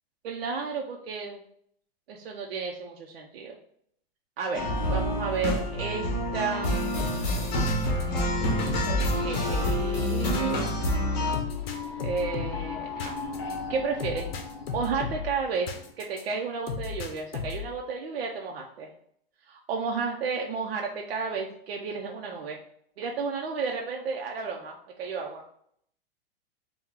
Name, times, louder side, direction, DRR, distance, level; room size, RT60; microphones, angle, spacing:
voice 1, 0.2-1.4 2.1-3.5 4.4-4.6 4.9-6.8 8.8-10.7 12.0-13.2 13.7-14.4 14.7-18.9 19.5-22.6 23.0-25.4, right 5 dB, 80° right, 0 dB, 0.7 m, -32 dB
sound 1, 4.5-11.4, left 1 dB, 45° left, 1.3 m, -27 dB
sound 2, 7.0-16.2 16.7-17.8, left 6 dB, 75° left, 0.8 m, -36 dB
sound 3, 10.8-15.9, left 5 dB, 30° left, 0.5 m, -38 dB
4.6 x 2.3 x 3.6 m, 0.66 s
supercardioid pair, 175°, 30 cm